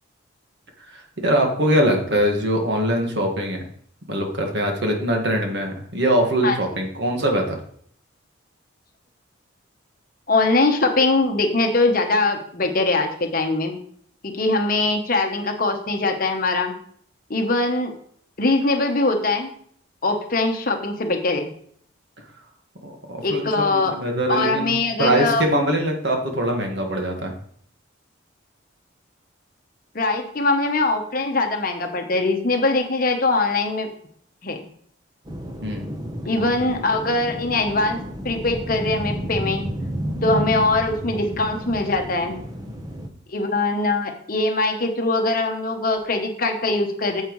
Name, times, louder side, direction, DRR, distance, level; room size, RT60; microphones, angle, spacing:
voice 1, 0.9-3.6 4.1-7.6 22.8-27.3 35.6-35.9, right 1 dB, 55° right, 2 dB, 1.7 m, -22 dB
voice 2, 10.3-13.8 14.2-16.8 17.3-17.9 18.4-19.5 20.0-21.5 23.2-23.9 24.3-25.4 29.9-33.9 34.4-34.7 36.3-38.0 38.2-39.6 40.2-42.4 43.3-47.2, left 2 dB, 45° left, 4 dB, 1.0 m, -22 dB
sound 1, 35.2-43.1, equal, 20° right, 0.9 m, -31 dB
8.9 x 7.4 x 3.2 m, 0.62 s
head